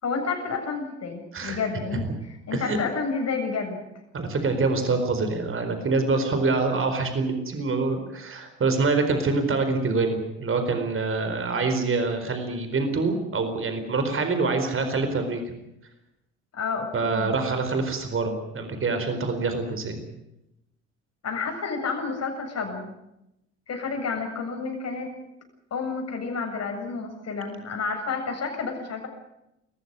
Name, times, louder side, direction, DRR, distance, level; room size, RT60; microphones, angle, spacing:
voice 1, 0.0-3.9 16.5-17.4 21.2-22.9 23.7-25.1 25.7-29.1, left 4 dB, 45° left, 3 dB, 7.5 m, -30 dB
voice 2, 4.1-15.4 16.9-20.0, right 3 dB, 35° right, 7 dB, 4.4 m, -25 dB
22.0 x 14.5 x 9.7 m, 0.87 s
hypercardioid pair, 60°, 36 cm